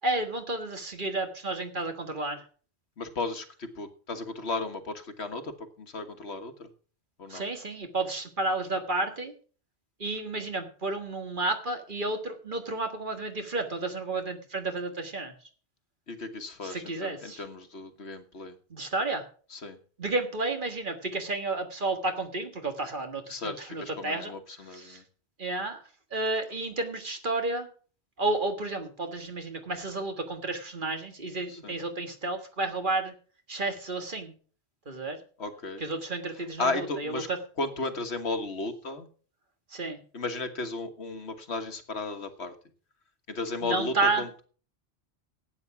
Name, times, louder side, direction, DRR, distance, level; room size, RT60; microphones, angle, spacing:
voice 1, 0.0-2.4 7.3-9.3 10.0-15.3 16.6-17.4 18.7-19.3 20.0-24.3 24.7-25.0 25.4-25.8 26.1-27.7 28.2-33.2 33.5-34.3 34.9-35.2 35.8-37.4 39.7-40.0 43.6-44.2, right 2 dB, 45° right, 6 dB, 1.8 m, -31 dB
voice 2, 3.0-6.7 7.2-7.4 16.1-18.6 19.5-19.8 23.3-25.0 31.5-31.7 35.4-35.8 36.6-37.3 37.6-39.1 40.1-42.5 43.3-44.4, left 3 dB, 70° left, 8 dB, 1.7 m, -34 dB
12.0 x 8.8 x 5.9 m, 0.41 s
omnidirectional pair, 1.2 m